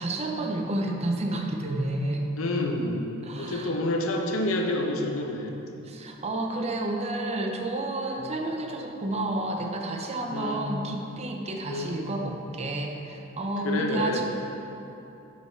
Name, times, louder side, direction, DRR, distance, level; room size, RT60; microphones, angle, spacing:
voice 1, 0.0-2.3 3.2-3.8 5.8-14.2, right 2 dB, 30° right, 2 dB, 0.6 m, -30 dB
voice 2, 2.4-3.1 3.4-5.6 8.2-8.3 10.3-10.7 11.7-12.0 13.6-14.2, left 1 dB, 70° left, 1 dB, 0.7 m, -28 dB
10.5 x 5.4 x 3.2 m, 2.9 s
head